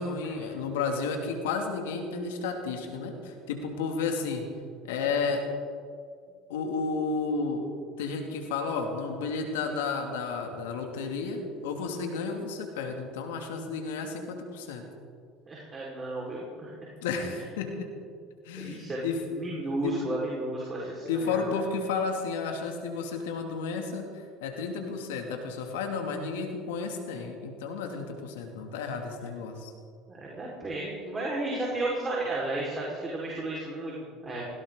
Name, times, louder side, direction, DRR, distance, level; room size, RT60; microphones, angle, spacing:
voice 1, 0.0-4.5 4.8-5.5 6.5-7.7 8.0-14.8 17.0-17.9 18.4-19.2 19.8-20.0 21.1-29.7, left 4 dB, 80° left, 3 dB, 2.6 m, -32 dB
voice 2, 15.5-16.7 18.6-19.1 19.3-21.4 30.1-34.4, right 2 dB, 30° right, -4 dB, 4.9 m, -33 dB
19.5 x 17.0 x 4.0 m, 2.2 s
hypercardioid pair, 75°, 0 cm